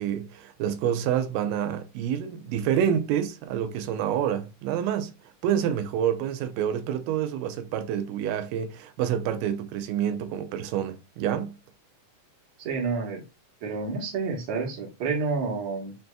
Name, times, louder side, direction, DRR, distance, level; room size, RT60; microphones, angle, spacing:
voice 1, 0.0-5.1 5.4-11.6, right 9 dB, 85° right, 2.2 m, -28 dB
voice 2, 12.6-13.2 13.6-16.0, right 4 dB, 65° right, 2.2 m, -29 dB
6.2 x 2.7 x 2.2 m
omnidirectional pair, 3.7 m